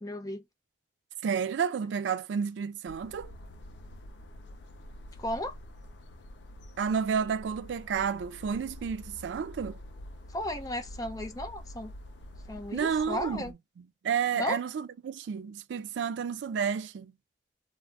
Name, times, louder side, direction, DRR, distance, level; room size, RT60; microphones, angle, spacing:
voice 1, 0.0-0.4 5.2-5.5 10.3-11.9 12.5-13.5 14.3-14.6, left 1 dB, 20° left, 0.5 m, -34 dB
voice 2, 1.2-3.3 6.8-9.8 12.7-13.5 13.8-17.1, right 6 dB, 90° right, 0.3 m, -31 dB
sound 1, 2.9-13.5, left 1 dB, 90° left, 0.5 m, -47 dB
2.5 x 2.0 x 3.3 m
head